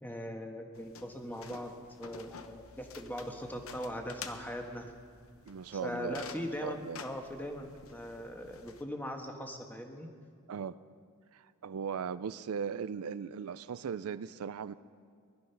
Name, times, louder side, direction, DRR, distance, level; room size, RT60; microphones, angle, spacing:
voice 1, 0.0-1.7 2.0-4.9 5.7-10.1, equal, 10° left, 3 dB, 1.3 m, -40 dB
sound 1, 0.7-8.8, left 5 dB, 65° left, 0.9 m, -50 dB
voice 2, 5.4-6.2 6.6-7.0 10.5-10.8 11.3-14.7, right 6 dB, 75° right, 15 dB, 0.4 m, -38 dB
20.5 x 11.5 x 5.7 m, 2.2 s
head